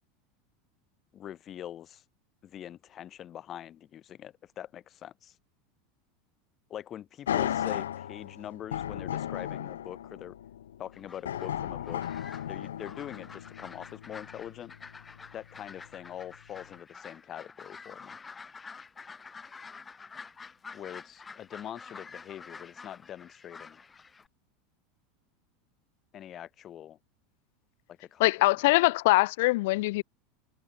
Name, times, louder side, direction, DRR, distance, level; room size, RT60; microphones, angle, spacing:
voice 1, 1.1-2.0 2.4-5.3 6.7-10.4 10.8-12.2 12.5-14.7 15.3-18.2 20.7-23.8 26.1-27.0 28.0-28.3, left 11 dB, 40° left, 4.9 m, -43 dB
sound 1, 7.3-15.4 15.9-16.0, left 10 dB, 90° left, 6.4 m, -35 dB
sound 2, 10.9-24.3, left 5 dB, 20° left, 7.8 m, -48 dB
voice 2, 28.2-30.0, left 21 dB, 70° left, 2.1 m, -23 dB
hypercardioid pair, 105°, 0 cm